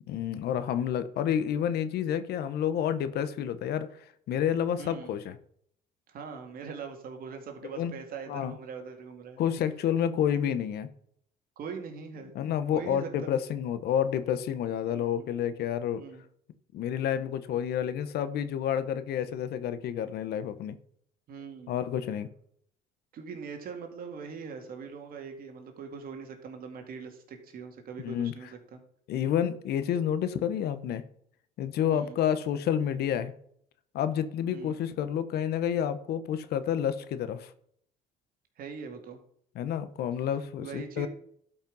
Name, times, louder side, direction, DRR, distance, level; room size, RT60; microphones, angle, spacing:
voice 1, 0.1-3.9 4.3-5.4 7.7-7.9 8.3-8.5 9.4-10.9 12.3-16.0 16.7-20.7 21.7-22.3 28.0-28.3 29.1-31.0 31.6-33.3 33.9-37.5 39.5-41.1, left 9 dB, 70° left, 1.0 m, -29 dB
voice 2, 4.8-5.1 6.1-9.4 11.6-12.3 12.7-13.3 14.9-15.3 15.9-16.2 21.3-21.8 23.1-28.8 31.9-32.2 34.5-34.8 38.6-39.2 40.6-41.1, right 6 dB, 60° right, 2.3 m, -42 dB
12.0 x 5.5 x 5.4 m
cardioid pair, 110°, 17 cm